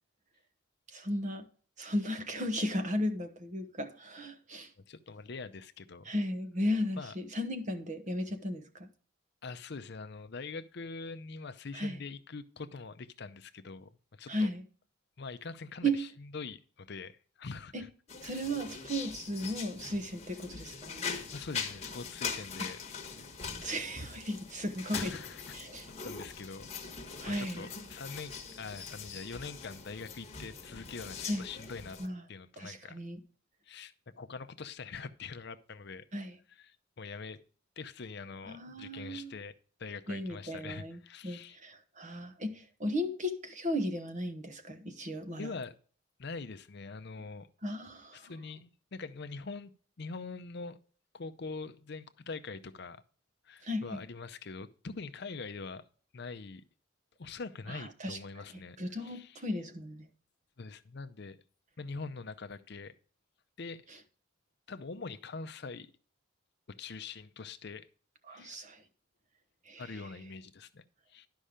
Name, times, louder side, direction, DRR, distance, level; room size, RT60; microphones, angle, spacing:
voice 1, 0.9-1.5 1.8-4.7 6.1-8.9 11.7-12.0 14.3-14.6 15.8-16.0 17.7-17.8 18.2-21.1 23.6-25.2 25.5-25.9 27.2-27.6 31.2-31.4 32.0-32.2 32.6-33.2 36.1-36.3 38.5-39.3 40.1-45.4 47.6-48.3 53.6-54.0 57.7-58.2 58.8-60.1 68.3-68.8 69.7-69.8, equal, 35° right, 1.0 m, -35 dB
voice 2, 4.8-6.1 7.0-7.1 9.4-14.5 15.2-17.9 18.2-18.4 21.3-22.8 23.2-23.3 24.9-25.4 26.0-26.7 27.2-32.0 32.3-33.0 33.7-36.1 36.5-37.4 37.8-39.5 39.8-41.6 45.4-45.8 46.2-47.5 48.1-49.7 50.0-50.8 51.1-53.0 53.4-55.8 56.1-56.6 57.2-59.5 60.6-61.4 61.8-62.9 63.6-63.8 64.7-65.9 66.8-67.9 68.3-68.6 69.8-70.8 71.1-71.3, left 4 dB, 50° left, 0.6 m, -43 dB
sound 1, 18.1-32.1, left 5 dB, 30° left, 1.3 m, -42 dB
11.5 x 5.5 x 5.0 m
head